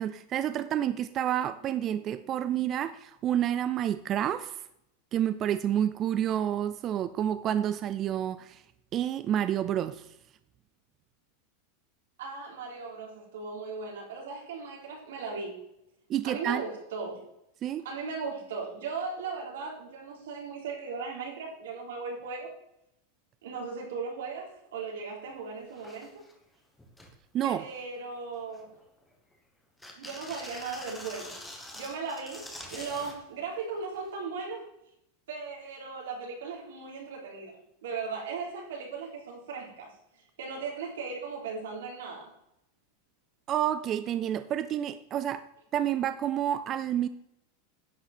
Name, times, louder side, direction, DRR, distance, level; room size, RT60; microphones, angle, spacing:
voice 1, 0.0-4.6 5.1-8.6 8.9-10.0 16.1-16.6 17.6-17.8 27.3-27.6 43.5-45.5 45.7-47.1, right 10 dB, 25° right, 12 dB, 0.4 m, -29 dB
voice 2, 12.2-15.6 16.2-17.2 17.8-22.5 23.4-26.2 27.4-28.8 30.0-31.4 31.7-34.7 35.3-37.5 37.8-39.9 40.4-42.3, right 4 dB, 90° right, -1 dB, 3.7 m, -37 dB
sound 1, 25.3-25.4 25.7-26.3 26.8-27.1 27.6-28.1 28.5-29.3 29.8-33.2 34.2-34.3, left 1 dB, 5° left, 1.3 m, -45 dB
10.5 x 8.3 x 4.3 m, 0.79 s
supercardioid pair, 175°, 0 cm